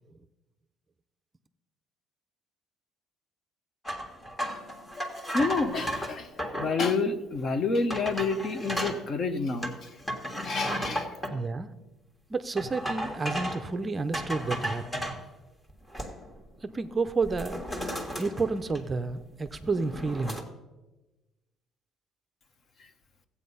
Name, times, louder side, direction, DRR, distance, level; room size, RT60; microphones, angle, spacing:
sound 1, 3.9-6.8 7.4-7.5 7.9-9.0 9.6-11.3 12.6-13.7 14.1-15.2 15.7-16.4 16.7-16.9 17.2-19.1 19.5-20.4, equal, 15° left, 1.7 m, -34 dB
voice 1, 5.3-9.9 10.4-11.1, left 3 dB, 40° left, 10 dB, 1.0 m, -29 dB
voice 2, 11.3-11.7 12.3-15.0 16.6-17.6 18.2-20.4, right 3 dB, 20° right, 10 dB, 0.6 m, -30 dB
14.5 x 8.4 x 5.5 m, 1.1 s
cardioid pair, 120°, 0 cm